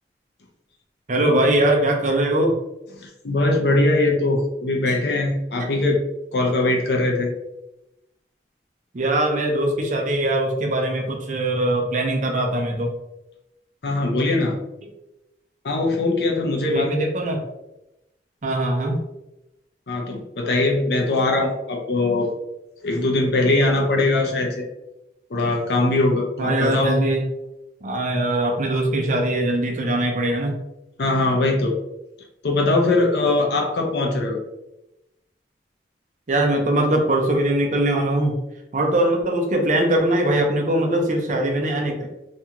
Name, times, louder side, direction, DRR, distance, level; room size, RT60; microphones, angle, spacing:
voice 1, 1.1-2.6 4.9-5.0 8.9-12.9 16.7-17.4 18.4-19.0 26.4-27.2 27.8-30.5 36.3-38.4 38.7-42.1, right 1 dB, 45° right, 2 dB, 0.5 m, -21 dB
voice 2, 3.0-6.0 6.3-7.3 13.8-14.5 15.6-16.9 19.9-22.3 22.8-24.7 25.3-26.9 31.0-31.7 32.4-34.4, left 2 dB, 65° left, 1 dB, 0.5 m, -21 dB
2.5 x 2.2 x 2.8 m, 0.92 s
head